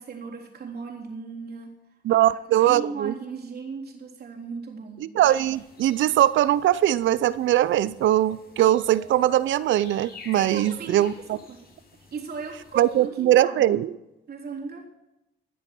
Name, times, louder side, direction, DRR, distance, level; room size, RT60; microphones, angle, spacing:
voice 1, 0.0-1.7 2.1-5.1 10.4-11.6 12.1-13.7 14.3-14.9, right 5 dB, 50° right, -1 dB, 3.7 m, -37 dB
voice 2, 2.0-3.1 5.0-11.4 12.8-13.9, right 13 dB, 75° right, 18 dB, 0.6 m, -21 dB
sound 1, 5.2-13.1, left 4 dB, 50° left, 7.0 m, -50 dB
17.5 x 10.0 x 6.1 m, 0.92 s
cardioid pair, 90°, 20 cm